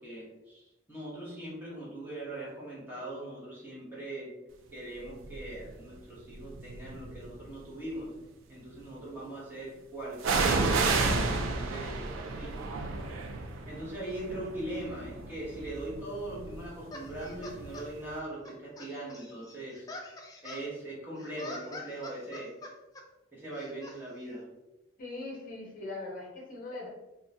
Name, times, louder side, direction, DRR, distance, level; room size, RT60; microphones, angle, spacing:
voice 1, 0.0-4.3 4.7-8.1 8.5-12.7 13.7-19.9 20.4-22.6 23.3-24.5, right 1 dB, 10° right, -7 dB, 1.0 m, -41 dB
sound 1, 5.2-5.6 6.4-7.3 10.2-17.8 18.1-18.2, right 3 dB, 80° right, 0.4 m, -32 dB
sound 2, 16.9-17.9 18.5-20.7 21.2-23.0 23.5-24.0, left 2 dB, 20° left, 0.3 m, -45 dB
voice 2, 25.0-26.9, left 2 dB, 45° left, -4 dB, 0.7 m, -41 dB
3.6 x 2.3 x 2.7 m, 0.98 s
head